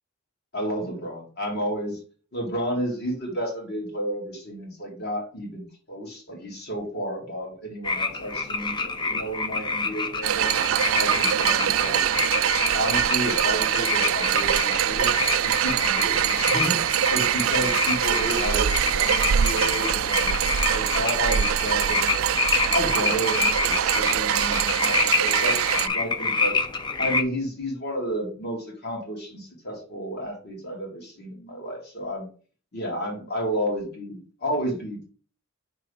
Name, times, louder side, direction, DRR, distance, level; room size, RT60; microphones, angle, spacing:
voice 1, 0.5-2.0 2.3-10.5 10.9-12.0 12.7-16.8 17.1-20.3 20.7-22.2 22.7-26.6 27.0-32.3 32.7-35.0, equal, 55° left, 0 dB, 2.1 m, -31 dB
sound 1, 7.8-27.2, left 4 dB, 20° left, 0.5 m, -28 dB
sound 2, 10.2-25.9, right 9 dB, 75° right, 0.4 m, -23 dB
5.4 x 3.7 x 4.8 m, 0.40 s
head